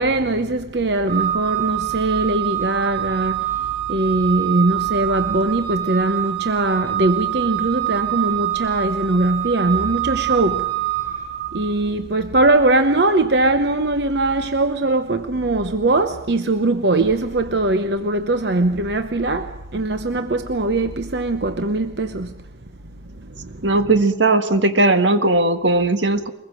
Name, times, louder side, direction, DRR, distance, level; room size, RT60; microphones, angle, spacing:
voice 1, 0.0-10.7 11.5-22.4 23.2-23.7, right 2 dB, 65° right, 0.9 m, -21 dB
Organ, 1.1-11.8, right 14 dB, 30° right, 3.1 m, -25 dB
voice 2, 23.6-26.3, right 2 dB, 80° right, 1.6 m, -17 dB
23.0 x 20.5 x 7.6 m
head